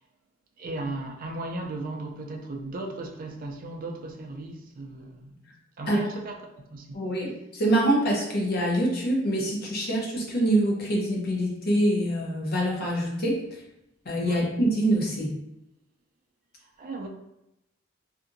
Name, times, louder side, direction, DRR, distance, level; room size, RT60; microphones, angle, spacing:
voice 1, 0.6-5.4 5.8-7.1 14.2-14.5 16.8-17.1, right 2 dB, 45° right, 0.4 m, -36 dB
voice 2, 6.9-13.4 14.0-15.4, right 1 dB, 50° left, 0.7 m, -25 dB
2.7 x 2.5 x 2.5 m
head